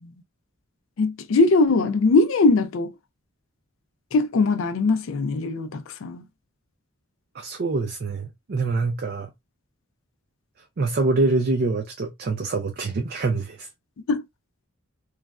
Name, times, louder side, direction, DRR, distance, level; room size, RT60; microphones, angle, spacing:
voice 1, 1.0-2.9 4.1-6.2 14.1-14.2, left 3 dB, 65° left, 0.4 m, -21 dB
voice 2, 7.3-9.3 10.8-13.7, right 3 dB, 45° right, 0.4 m, -25 dB
3.1 x 2.4 x 2.2 m
head